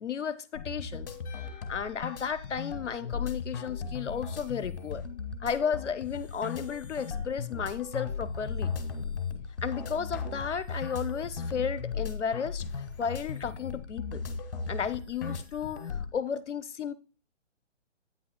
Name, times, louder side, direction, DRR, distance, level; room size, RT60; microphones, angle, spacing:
voice 1, 0.0-1.1 1.4-5.0 5.4-8.7 9.6-12.6 13.0-14.2 14.7-16.9, left 7 dB, 70° left, 0.8 m, -33 dB
sound 1, 0.5-16.2, left 5 dB, 45° left, 1.4 m, -37 dB
sound 2, 1.2-3.5, left 7 dB, 30° left, 2.5 m, -56 dB
9.3 x 8.9 x 2.2 m
figure-of-eight pair, 140°, 37 cm